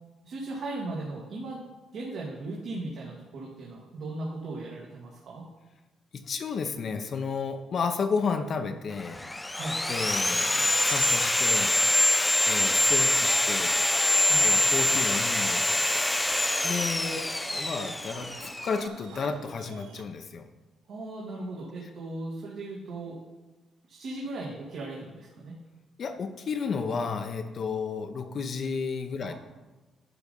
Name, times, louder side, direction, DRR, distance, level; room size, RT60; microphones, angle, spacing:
voice 1, 0.2-1.6 1.9-5.4 9.6-9.8 14.3-14.6 20.9-23.2 23.9-25.6 29.2-29.3, right 2 dB, 70° right, -4 dB, 1.9 m, -37 dB
voice 2, 6.1-9.2 9.9-11.7 12.5-13.8 14.4-15.6 16.6-20.5 26.0-29.3, left 5 dB, 55° left, 7 dB, 0.8 m, -32 dB
Sawing, 9.0-18.9, left 1 dB, 10° left, 0.3 m, -25 dB
sound 1, 10.0-20.0, right 6 dB, 90° right, 0.8 m, -46 dB
11.0 x 4.1 x 5.4 m, 1.2 s
cardioid pair, 90°, 0 cm